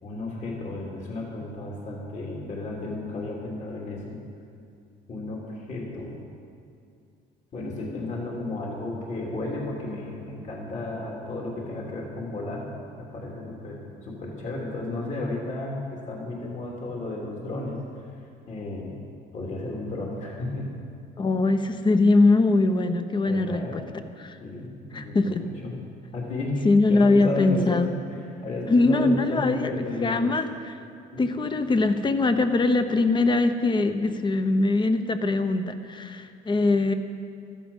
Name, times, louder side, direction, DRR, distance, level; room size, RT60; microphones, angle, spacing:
voice 1, 0.0-4.2 5.1-6.2 7.5-12.7 13.0-17.8 18.5-18.9 19.3-20.7 23.3-23.8 24.4-25.8 26.1-30.3 31.1-31.2, left 2 dB, 45° left, -3 dB, 3.1 m, -33 dB
voice 2, 21.2-23.8 24.2-24.4 24.9-25.5 26.6-27.9 28.7-30.7 31.2-36.9, left 3 dB, 30° left, 8 dB, 1.0 m, -22 dB
15.0 x 13.5 x 5.6 m, 2.4 s
cardioid pair, 110°, 17 cm